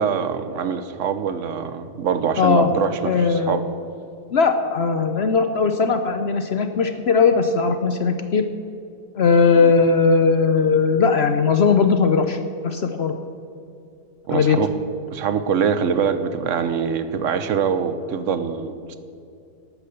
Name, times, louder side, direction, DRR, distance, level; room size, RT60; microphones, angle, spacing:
voice 1, 0.0-3.6 9.6-9.7 14.3-14.7 15.1-19.0, right 7 dB, 60° right, 11 dB, 1.0 m, -24 dB
voice 2, 2.4-2.7 3.0-3.5 4.3-8.4 9.1-13.1 14.3-14.6, left 5 dB, 55° left, 8 dB, 0.7 m, -18 dB
12.0 x 9.1 x 6.9 m, 2.5 s
omnidirectional pair, 1.6 m